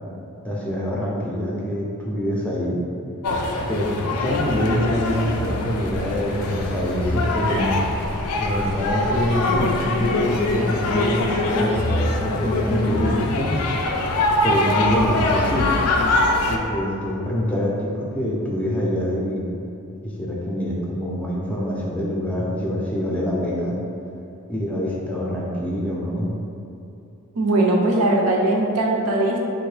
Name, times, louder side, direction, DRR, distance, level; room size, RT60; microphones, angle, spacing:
voice 1, 0.4-2.9 3.7-7.8 8.4-13.6 14.4-15.7 16.5-19.5 20.0-23.8 24.5-26.3, equal, 5° left, -5 dB, 0.4 m, -25 dB
sound 1, 3.2-16.6, left 2 dB, 80° left, 0.4 m, -23 dB
voice 2, 27.3-29.4, right 2 dB, 90° right, -1 dB, 0.5 m, -20 dB
3.6 x 2.6 x 3.2 m, 2.8 s
head